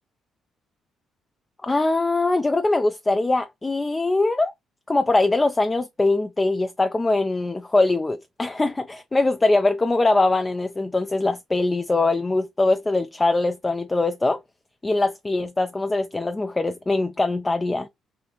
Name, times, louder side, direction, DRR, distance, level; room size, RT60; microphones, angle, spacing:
voice 1, 1.6-4.5 4.9-14.4 14.8-17.9, left 2 dB, 20° left, 0.3 m, -22 dB
3.5 x 2.5 x 2.7 m
cardioid pair, 90°, 0 cm